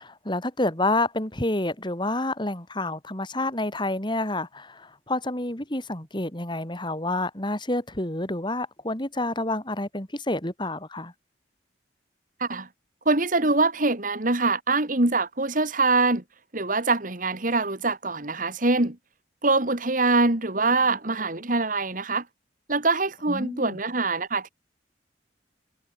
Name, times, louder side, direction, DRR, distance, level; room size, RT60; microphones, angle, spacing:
voice 1, 0.0-11.1 23.3-23.8, left 2 dB, 25° left, 4.1 m, -29 dB
voice 2, 13.1-16.2 16.5-19.0 19.4-22.2 22.7-24.5, right 3 dB, 45° right, 2.4 m, -24 dB
head